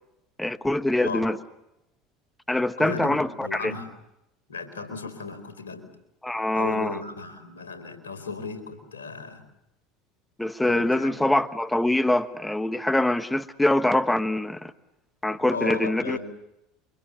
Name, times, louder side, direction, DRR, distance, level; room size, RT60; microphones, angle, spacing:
voice 1, 0.4-1.4 2.5-3.7 6.2-7.0 10.4-14.7 15.2-16.2, left 1 dB, 10° left, 11 dB, 1.3 m, -24 dB
voice 2, 2.8-3.9 4.5-5.9 6.5-9.5 10.6-11.2 15.2-16.2, left 4 dB, 85° left, 8 dB, 4.4 m, -35 dB
28.5 x 25.0 x 7.2 m, 0.85 s
hypercardioid pair, 75°, 0 cm